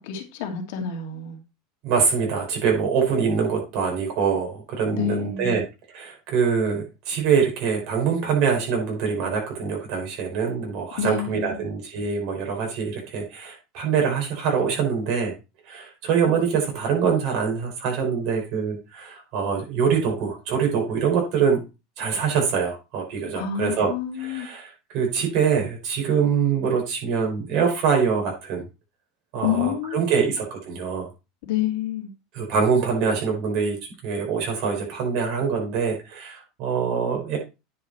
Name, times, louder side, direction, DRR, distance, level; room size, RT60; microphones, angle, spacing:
voice 1, 0.0-1.4 4.9-5.6 11.0-11.6 23.3-24.5 29.4-30.3 31.4-32.1, left 9 dB, 70° left, 2.4 m, -28 dB
voice 2, 1.8-5.6 5.9-15.3 15.7-21.6 22.0-23.9 24.2-28.6 29.3-31.1 32.3-33.8 34.0-37.4, right 6 dB, 55° right, 5.2 m, -24 dB
9.7 x 5.6 x 4.5 m
supercardioid pair, 150°, 0 cm